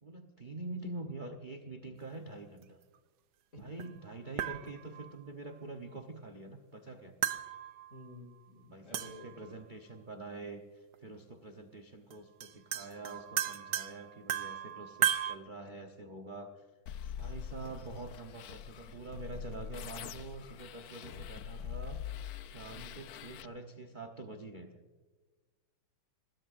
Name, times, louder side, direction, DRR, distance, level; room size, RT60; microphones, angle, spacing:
voice 1, 0.0-2.8 3.6-7.1 8.7-16.6 17.2-22.0 22.4-24.7, right 2 dB, 30° right, 5 dB, 0.9 m, -46 dB
sound 1, 3.8-3.9 4.4-5.1 7.2-8.1 8.9-9.5 10.9-11.0 12.1-12.2 12.4-15.4, right 11 dB, 65° right, 1.3 m, -35 dB
voice 2, 7.9-9.6 22.7-23.0, left 1 dB, 35° left, 4 dB, 3.0 m, -52 dB
sound 2, 16.9-23.5, left 9 dB, 85° left, 0.8 m, -44 dB
26.0 x 20.0 x 2.7 m, 1.3 s
omnidirectional pair, 2.3 m